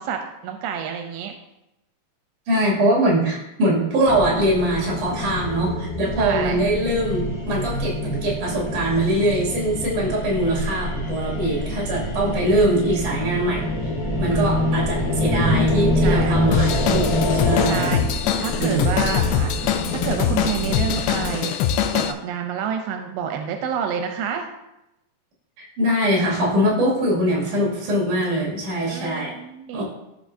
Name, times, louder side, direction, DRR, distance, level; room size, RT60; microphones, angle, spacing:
voice 1, 0.0-1.3 6.2-6.6 14.3-14.5 15.0-15.1 16.0-16.4 17.6-21.6 21.9-24.5 28.8-29.8, right 7 dB, 90° right, 5 dB, 2.6 m, -29 dB
voice 2, 2.5-13.9 14.2-18.0 18.6-19.0 25.6-29.3 29.7-29.8, right 1 dB, 55° right, -4 dB, 3.7 m, -22 dB
sound 1, 4.1-21.3, left 1 dB, 10° left, 2.3 m, -25 dB
Drum kit / Drum, 16.5-22.1, left 9 dB, 85° left, 2.6 m, -23 dB
15.5 x 5.2 x 2.7 m, 0.90 s
omnidirectional pair, 4.4 m